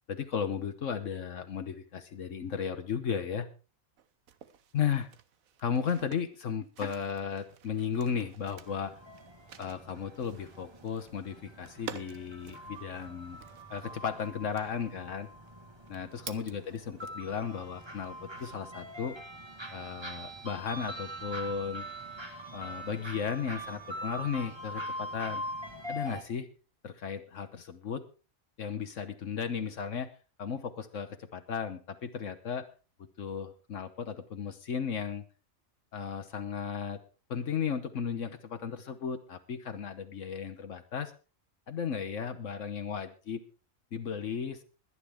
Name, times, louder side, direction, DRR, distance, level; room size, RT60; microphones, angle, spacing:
voice 1, 0.1-3.5 4.7-5.1 5.6-8.9 9.6-13.4 13.7-15.3 15.9-19.2 19.7-21.9 22.5-25.4 25.9-26.5 26.8-28.0 28.6-30.1 30.4-32.7 33.2-35.2 35.9-37.0 37.3-41.1 41.7-43.4 43.9-44.6, left 7 dB, 70° left, 7 dB, 1.3 m, -35 dB
sound 1, 4.0-17.4 17.8-18.9, right 8 dB, 90° right, 1.4 m, -51 dB
sound 2, 8.7-26.2, right 1 dB, 20° right, 1.8 m, -43 dB
21.5 x 9.9 x 3.5 m, 0.34 s
omnidirectional pair, 1.4 m